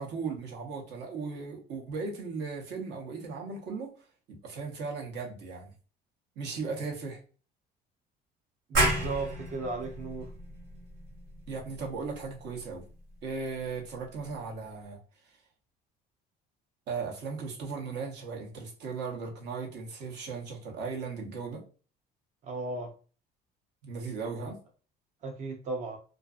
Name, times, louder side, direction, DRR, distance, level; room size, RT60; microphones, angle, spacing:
voice 1, 0.0-3.9 4.3-5.7 6.4-7.2 11.5-12.8 13.2-15.0 16.9-21.6 23.8-24.6, right 4 dB, 65° right, 0.8 m, -37 dB
voice 2, 8.7-10.3 22.4-22.9 25.2-26.0, right 3 dB, 40° right, 0.5 m, -35 dB
sound 1, 8.7-14.1, right 1 dB, 85° right, 1.2 m, -33 dB
2.5 x 2.4 x 2.3 m
cardioid pair, 120°, 19 cm